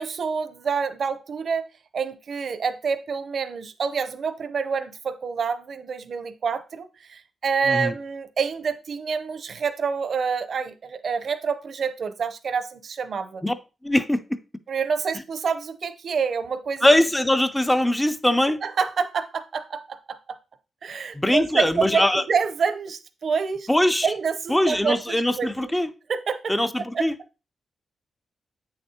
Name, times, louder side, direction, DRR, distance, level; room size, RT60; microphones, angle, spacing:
voice 1, 0.0-1.7 1.9-13.4 14.7-16.9 18.6-20.4 20.8-23.7 24.0-25.7 26.1-26.5 26.9-27.0, right 5 dB, 55° right, 0.7 m, -27 dB
voice 2, 13.8-14.4 16.8-18.6 21.1-22.2 23.7-24.1 24.5-25.9 26.5-27.2, left 1 dB, 10° left, 0.4 m, -21 dB
8.2 x 6.6 x 2.8 m
wide cardioid pair, 120°, 0 cm